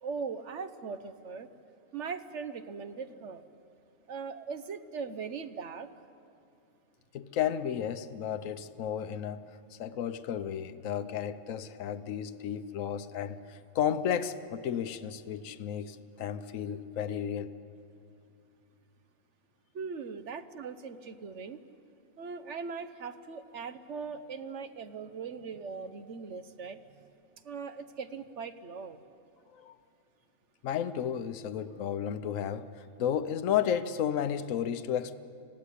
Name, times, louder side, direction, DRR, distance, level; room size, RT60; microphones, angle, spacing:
voice 1, 0.0-1.5 1.9-3.4 4.1-5.9 19.7-21.6 22.2-26.8 27.4-29.0, right 5 dB, 60° right, 1.2 m, -40 dB
voice 2, 7.1-9.5 9.7-17.5 29.5-29.7 30.6-35.1, left 9 dB, 75° left, 1.2 m, -33 dB
25.0 x 16.0 x 10.0 m
omnidirectional pair, 1.4 m